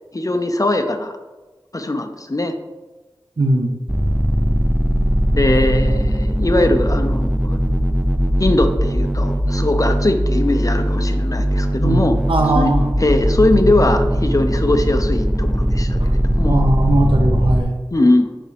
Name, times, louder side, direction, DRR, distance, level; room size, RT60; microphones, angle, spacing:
voice 1, 0.1-1.1 1.7-2.5 5.3-7.6 8.4-12.2 12.5-12.7 13.0-16.6 17.9-18.3, left 2 dB, 40° left, 7 dB, 0.7 m, -20 dB
voice 2, 3.4-3.8 5.5-6.0 11.7-12.9 16.0-16.1 16.5-17.7, right 1 dB, 70° right, 3 dB, 1.0 m, -19 dB
sound 1, 3.9-17.6, equal, 10° right, 0.6 m, -19 dB
8.9 x 5.9 x 3.4 m, 1.2 s
wide cardioid pair, 65°, 9 cm